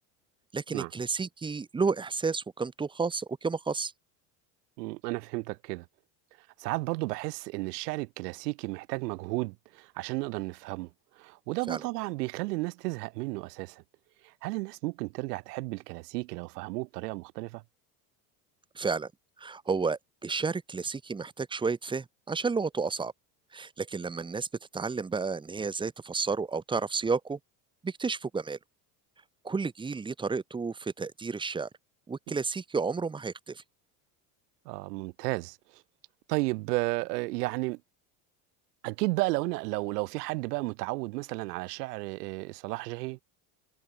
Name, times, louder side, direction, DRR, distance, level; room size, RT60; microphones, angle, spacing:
voice 1, 0.5-3.9 11.7-11.8 18.8-19.1 19.4-23.1 23.5-24.5 24.7-27.4 27.8-28.6 29.4-31.7 32.1-33.6, right 4 dB, 10° right, 0.6 m, -31 dB
voice 2, 4.8-5.8 6.6-10.9 11.2-13.8 14.2-17.6 34.7-35.8 36.3-37.8 38.8-43.2, right 22 dB, 85° right, 2.4 m, -33 dB
supercardioid pair, 120°, 46 cm